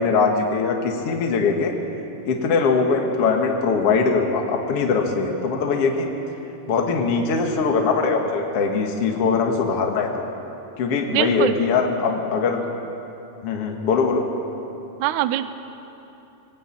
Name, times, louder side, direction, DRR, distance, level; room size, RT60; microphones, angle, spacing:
voice 1, 0.0-1.7 2.3-6.1 6.7-10.3 10.8-12.6 13.4-14.3, left 4 dB, 50° left, 2 dB, 2.1 m, -21 dB
voice 2, 11.1-11.5 15.0-15.5, right 13 dB, 90° right, 12 dB, 1.7 m, -22 dB
19.5 x 18.5 x 8.6 m, 2.9 s
omnidirectional pair, 4.3 m